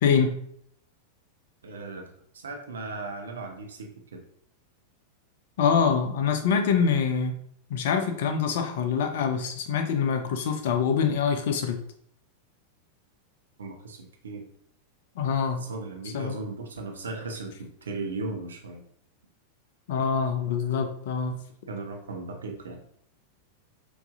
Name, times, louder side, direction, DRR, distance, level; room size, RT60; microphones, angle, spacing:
voice 1, 0.0-0.3 5.6-7.3 7.7-11.8 15.2-15.6 16.1-16.3 19.9-21.3, left 6 dB, 55° left, 6 dB, 0.5 m, -25 dB
voice 2, 1.6-4.2 13.6-14.5 15.6-18.8 21.7-22.8, right 3 dB, 70° right, 3 dB, 0.6 m, -37 dB
4.6 x 2.6 x 2.5 m, 0.65 s
figure-of-eight pair, 90°, 0 cm